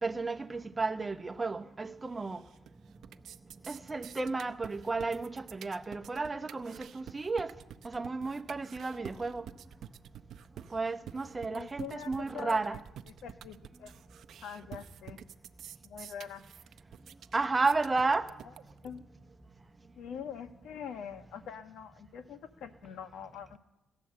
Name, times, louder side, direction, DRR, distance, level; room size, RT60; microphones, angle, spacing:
voice 1, 0.0-2.4 3.7-7.5 7.8-9.4 10.7-12.8 17.3-18.3, right 3 dB, 25° right, 0.9 m, -32 dB
sound 1, 2.2-2.7 3.0-19.0, right 9 dB, 70° right, 0.6 m, -49 dB
voice 2, 11.4-12.8 13.2-13.9 14.4-15.2 15.8-16.4 18.8-19.0 20.0-23.6, left 7 dB, 80° left, 1.1 m, -44 dB
17.5 x 11.0 x 7.5 m
cardioid pair, 90°, 0 cm